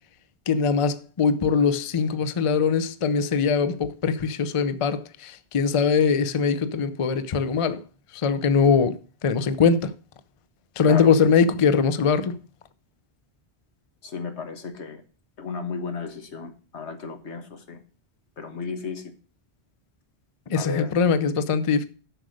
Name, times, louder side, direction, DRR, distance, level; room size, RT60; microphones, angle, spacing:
voice 1, 0.5-7.8 8.2-9.9 10.8-12.3 20.5-21.9, left 5 dB, 40° left, 0.5 m, -22 dB
voice 2, 14.0-15.0 15.4-17.8 18.4-19.1 20.5-20.9, left 5 dB, 80° left, 1.6 m, -34 dB
7.7 x 6.3 x 6.3 m
omnidirectional pair, 1.1 m